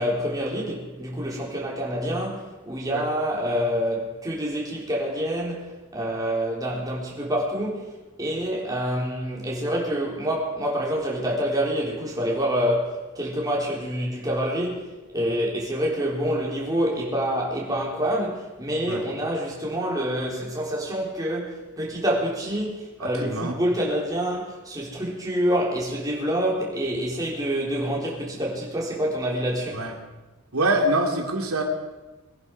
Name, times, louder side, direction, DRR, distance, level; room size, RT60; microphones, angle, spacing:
voice 1, 0.0-14.9 15.1-29.8, equal, 15° right, -3 dB, 3.7 m, -27 dB
voice 2, 23.0-23.5 29.7-29.9 30.5-31.6, right 1 dB, 80° right, 2 dB, 2.7 m, -24 dB
22.5 x 11.0 x 4.7 m, 1.1 s
head